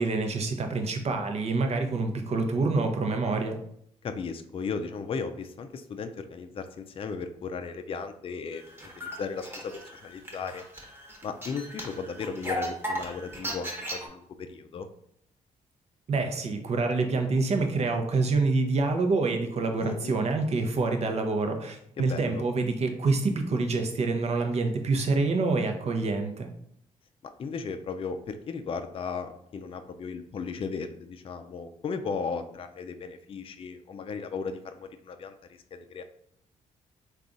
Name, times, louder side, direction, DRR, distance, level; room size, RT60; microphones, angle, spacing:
voice 1, 0.0-3.6 16.1-26.5, right 3 dB, 50° right, 5 dB, 0.7 m, -27 dB
voice 2, 4.0-10.6 11.2-14.9 19.8-20.2 22.0-22.4 27.2-36.0, left 5 dB, 40° left, 8 dB, 0.4 m, -36 dB
sound 1, 8.6-14.1, equal, 15° right, 1.0 m, -37 dB
3.6 x 2.4 x 3.8 m, 0.69 s
cardioid pair, 75°, 14 cm